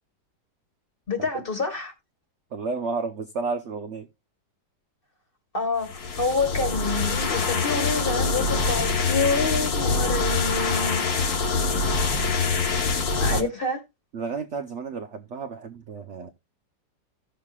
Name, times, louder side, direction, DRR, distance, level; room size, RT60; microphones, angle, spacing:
voice 1, 1.1-1.9 5.5-11.0 13.2-13.8, left 3 dB, 30° left, 1.5 m, -27 dB
voice 2, 2.5-4.1 13.3-13.5 14.1-16.3, right 4 dB, 60° right, 0.7 m, -31 dB
sound 1, 5.8-13.4, left 4 dB, 55° left, 1.6 m, -24 dB
16.0 x 6.5 x 2.4 m
omnidirectional pair, 2.0 m